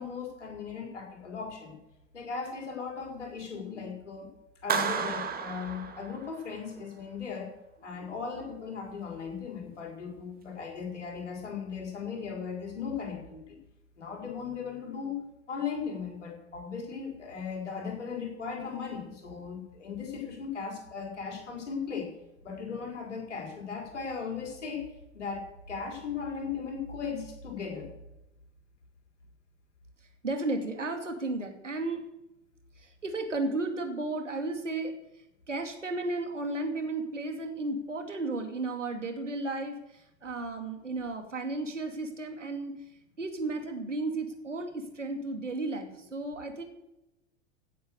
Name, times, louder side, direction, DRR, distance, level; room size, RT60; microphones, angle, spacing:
voice 1, 0.0-1.8 2.1-4.3 4.6-7.5 7.8-13.6 14.0-15.2 15.5-22.1 22.4-24.9 25.1-27.9, left 6 dB, 75° left, 0 dB, 5.1 m, -37 dB
Clapping, 4.7-6.6, right 6 dB, 25° right, 2.1 m, -32 dB
voice 2, 30.2-32.0 32.8-34.9 35.5-42.7 43.2-46.6, right 2 dB, 85° right, 5 dB, 2.5 m, -34 dB
16.5 x 8.6 x 6.7 m, 0.93 s
figure-of-eight pair, 85°, 36 cm